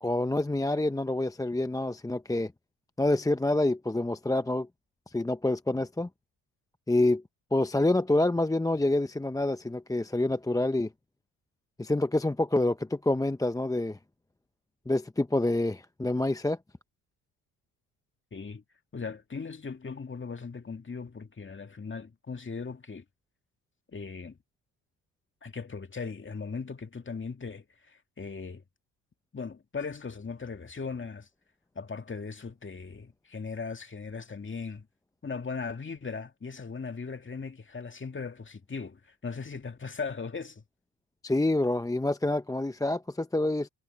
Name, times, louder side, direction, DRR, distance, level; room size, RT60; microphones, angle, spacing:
voice 1, 0.0-2.5 3.0-4.7 5.1-6.1 6.9-7.2 7.5-10.9 11.8-14.0 14.9-16.6 41.2-43.7, left 2 dB, 10° left, 0.7 m, -27 dB
voice 2, 18.3-18.6 18.9-23.0 23.9-24.4 25.4-28.6 29.3-31.3 31.8-34.9 35.2-40.6, left 5 dB, 25° left, 2.2 m, -38 dB
supercardioid pair, 65°, 45 cm